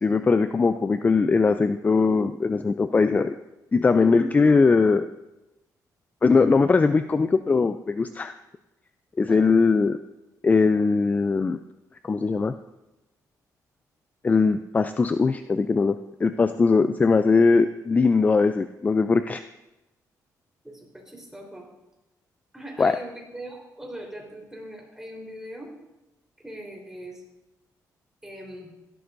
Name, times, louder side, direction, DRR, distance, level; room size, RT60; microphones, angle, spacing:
voice 1, 0.0-3.3 3.7-5.1 6.2-8.3 9.2-10.0 10.4-11.6 12.0-12.5 14.2-19.4 22.8-23.0, left 4 dB, 25° left, 10 dB, 0.4 m, -20 dB
voice 2, 20.6-21.7 22.5-25.7 26.4-27.2 28.2-28.7, right 1 dB, 5° right, -1 dB, 3.9 m, -40 dB
16.5 x 12.5 x 2.6 m, 0.99 s
cardioid pair, 105°, 7 cm